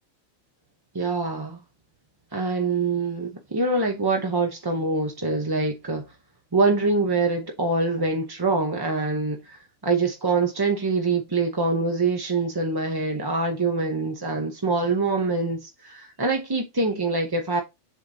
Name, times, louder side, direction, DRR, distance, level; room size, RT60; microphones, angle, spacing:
voice 1, 0.9-1.6 2.3-6.0 6.5-9.6 9.8-17.6, right 3 dB, 25° right, 0.5 m, -24 dB
7.4 x 5.0 x 2.7 m
omnidirectional pair, 1.4 m